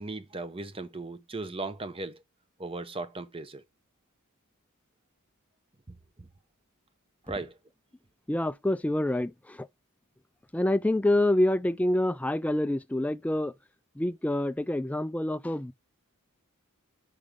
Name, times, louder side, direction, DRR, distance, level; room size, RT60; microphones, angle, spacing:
voice 1, 0.0-2.2 2.6-3.6 5.9-6.3 7.2-7.6, right 2 dB, 25° right, 0.8 m, -37 dB
voice 2, 8.3-9.7 10.5-13.5 14.0-15.7, left 1 dB, 5° left, 0.3 m, -27 dB
5.2 x 5.0 x 5.2 m
head